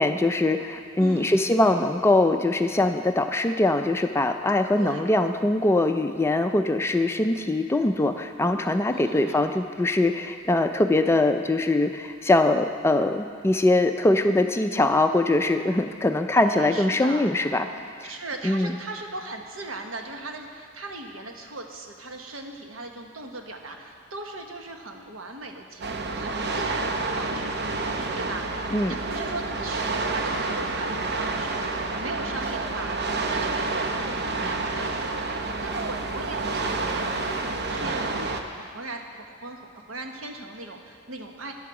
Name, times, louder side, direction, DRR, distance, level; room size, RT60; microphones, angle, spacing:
voice 1, 0.0-17.7 18.0-18.1 18.4-18.8 28.7-28.9, left 2 dB, 15° left, 7 dB, 0.4 m, -22 dB
voice 2, 1.0-1.4 4.8-5.1 8.9-9.4 16.3-17.3 18.0-41.5, right 2 dB, 75° right, 3 dB, 1.2 m, -38 dB
sound 1, 25.8-38.4, right 3 dB, 55° right, 0.8 m, -29 dB
13.0 x 10.0 x 4.8 m, 2.3 s
head